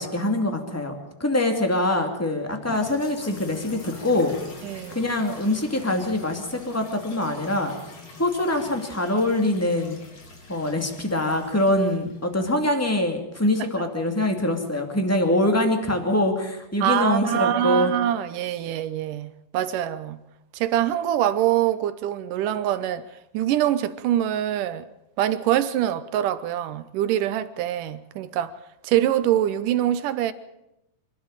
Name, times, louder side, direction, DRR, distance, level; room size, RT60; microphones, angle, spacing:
voice 1, 0.0-4.3 4.9-7.7 8.2-10.0 10.5-17.9, left 1 dB, 5° left, 1.7 m, -24 dB
sound 1, 2.6-12.8, left 2 dB, 50° left, 5.0 m, -44 dB
voice 2, 4.6-5.0 16.8-20.2 20.5-23.1 23.3-24.9 25.2-28.6 28.8-30.3, right 12 dB, 70° right, 2.3 m, -24 dB
25.0 x 12.5 x 9.0 m
omnidirectional pair, 4.2 m